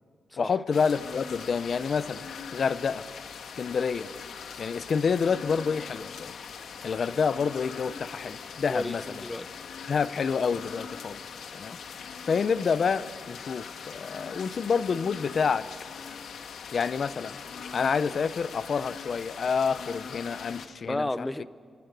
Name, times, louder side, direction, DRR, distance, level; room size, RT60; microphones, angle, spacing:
voice 1, 0.4-3.1 3.6-4.1 4.6-6.3 6.8-9.0 9.9-11.2 11.5-11.8 12.3-15.7 16.7-17.4 17.7-21.3, left 6 dB, 55° left, 15 dB, 0.7 m, -28 dB
sound 1, 0.7-20.7, left 6 dB, 90° left, 1.7 m, -41 dB
voice 2, 8.7-9.6 20.9-21.5, left 1 dB, 15° left, 15 dB, 0.7 m, -32 dB
28.0 x 25.0 x 8.2 m, 2.2 s
wide cardioid pair, 115°, 0 cm